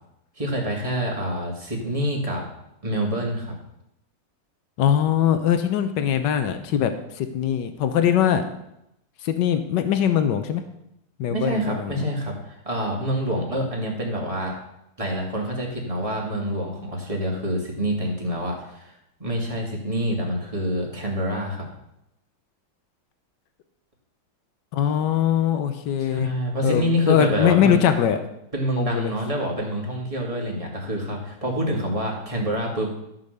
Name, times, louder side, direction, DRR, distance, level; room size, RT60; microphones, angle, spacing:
voice 1, 0.4-2.4 2.8-3.5 11.3-14.5 15.0-21.7 26.0-27.8 28.5-32.9, equal, 20° right, -1 dB, 2.2 m, -27 dB
voice 2, 4.8-6.9 7.2-8.4 9.2-10.6 11.2-11.9 24.7-26.3 26.6-28.2 28.8-29.1, left 9 dB, 85° left, 9 dB, 1.5 m, -21 dB
13.0 x 5.8 x 6.6 m, 0.82 s
omnidirectional pair, 1.9 m